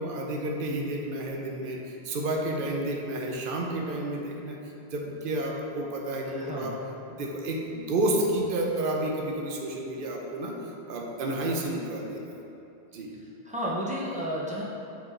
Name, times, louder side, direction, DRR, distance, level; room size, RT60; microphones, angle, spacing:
voice 1, 0.0-4.6 4.9-6.8 7.1-10.6 10.9-12.2 12.9-13.1, right 1 dB, 55° right, 0 dB, 0.9 m, -30 dB
voice 2, 6.3-6.8 13.4-14.6, equal, 5° right, -6 dB, 0.9 m, -32 dB
7.0 x 4.8 x 3.8 m, 2.8 s
omnidirectional pair, 1.1 m